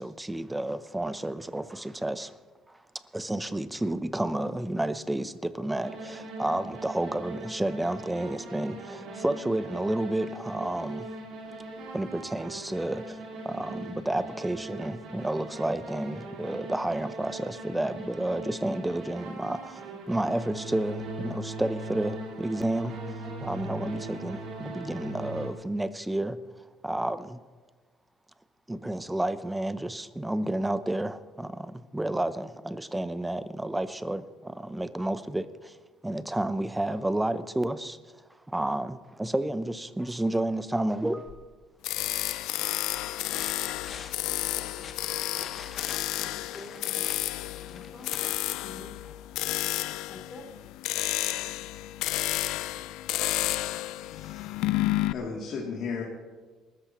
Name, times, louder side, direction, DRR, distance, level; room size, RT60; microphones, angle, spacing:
voice 1, 0.0-2.3 3.1-11.1 11.9-13.2 13.4-19.8 20.1-23.0 23.4-26.4 26.8-27.4 28.7-35.8 36.0-38.0 38.5-41.4 42.4-42.5, right 1 dB, 5° right, 0.6 m, -31 dB
sound 1, 5.8-25.5, right 2 dB, 60° right, 4.0 m, -40 dB
sound 2, 41.2-41.6 42.1-49.1 50.8-50.9, left 6 dB, 35° left, 1.1 m, -46 dB
sound 3, 41.8-55.1, left 16 dB, 75° left, 0.4 m, -31 dB
voice 2, 44.5-45.6 46.3-47.2 47.7-48.3 48.6-49.2 50.1-50.8, left 1 dB, 20° left, 3.0 m, -49 dB
voice 3, 53.7-54.7 55.1-56.0, left 5 dB, 50° left, 2.6 m, -36 dB
27.5 x 14.0 x 3.0 m
cardioid pair, 155°, 0 cm